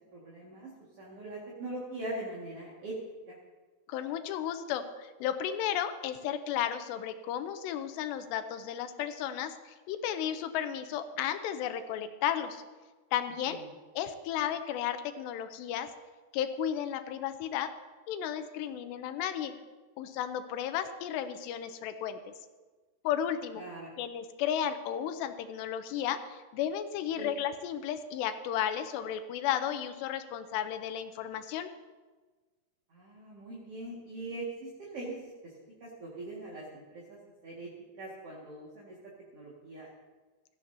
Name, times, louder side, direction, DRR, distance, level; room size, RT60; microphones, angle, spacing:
voice 1, 0.1-0.7 1.0-2.9 3.3-3.4 13.5-13.7 23.5-23.9 27.2-27.4 32.9-35.3 35.8-37.7 38.0-38.9 39.3-39.9, right 2 dB, 45° right, -5 dB, 2.3 m, -42 dB
voice 2, 3.9-12.6 13.1-13.6 14.0-15.9 16.3-17.7 18.1-19.5 20.0-22.2 23.0-23.6 24.0-31.7, left 10 dB, 90° left, 10 dB, 2.8 m, -33 dB
16.5 x 14.5 x 2.8 m, 1.3 s
omnidirectional pair, 5.0 m